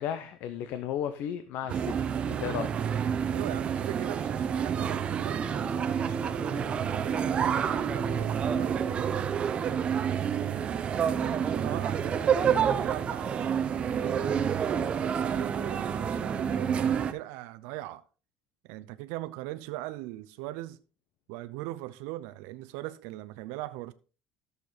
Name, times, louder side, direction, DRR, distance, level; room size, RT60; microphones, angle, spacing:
voice 1, 0.0-1.9 2.3-2.7, left 9 dB, 60° left, 0.9 m, -34 dB
sound 1, 1.7-17.1, right 7 dB, 30° right, 0.7 m, -28 dB
voice 2, 3.1-9.9 10.5-18.1 18.6-20.8 21.3-23.9, right 17 dB, 85° right, 0.6 m, -40 dB
13.5 x 6.7 x 4.1 m
cardioid pair, 150°, 4 cm